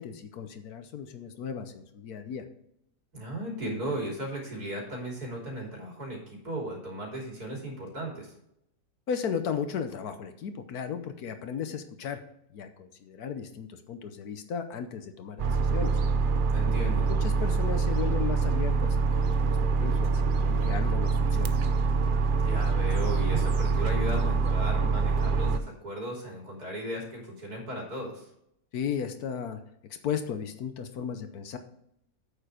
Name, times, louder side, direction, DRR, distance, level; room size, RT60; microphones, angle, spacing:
voice 1, 0.0-2.5 9.1-12.2 12.5-16.0 17.1-21.6 28.7-29.6 30.0-31.6, left 7 dB, 70° left, 8 dB, 1.2 m, -35 dB
voice 2, 3.1-8.3 16.5-17.1 22.4-28.3, right 1 dB, 60° right, -2 dB, 3.9 m, -36 dB
sound 1, 15.4-25.6, right 4 dB, 90° right, 0.4 m, -25 dB
8.9 x 7.0 x 4.9 m, 0.75 s
omnidirectional pair, 1.8 m